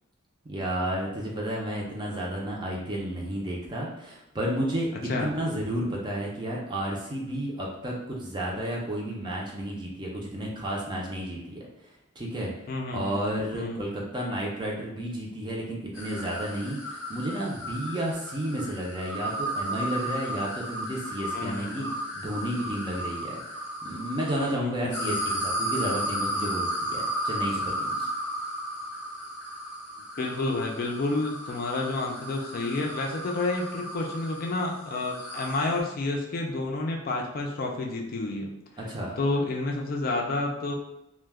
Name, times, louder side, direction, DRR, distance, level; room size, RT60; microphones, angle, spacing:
voice 1, 0.4-4.9 5.2-11.6 12.2-12.5 12.9-21.9 22.1-23.4 23.8-28.1 38.8-39.2, right 1 dB, 25° right, -3 dB, 0.5 m, -32 dB
voice 2, 12.7-13.2 13.5-13.8 21.3-21.9 24.5-25.2 30.2-38.5 39.2-40.7, left 2 dB, 45° left, 1 dB, 0.4 m, -30 dB
sound 1, 15.9-24.5 24.9-35.8, equal, 10° left, 0.7 m, -34 dB
2.2 x 2.2 x 3.3 m, 0.87 s
head